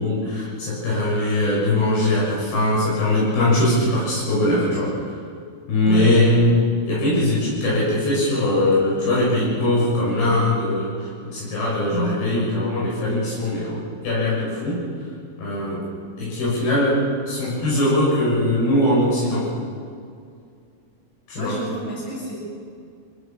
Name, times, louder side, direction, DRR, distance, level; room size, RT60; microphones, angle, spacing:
voice 1, 0.0-5.0 5.7-14.8 15.4-15.9 16.2-19.5 21.3-21.6, left 1 dB, 85° left, -6 dB, 8.2 m, -21 dB
voice 2, 11.9-12.2 21.4-22.3, equal, 55° left, -5 dB, 9.4 m, -28 dB
25.0 x 17.0 x 7.1 m, 2.3 s
omnidirectional pair, 4.3 m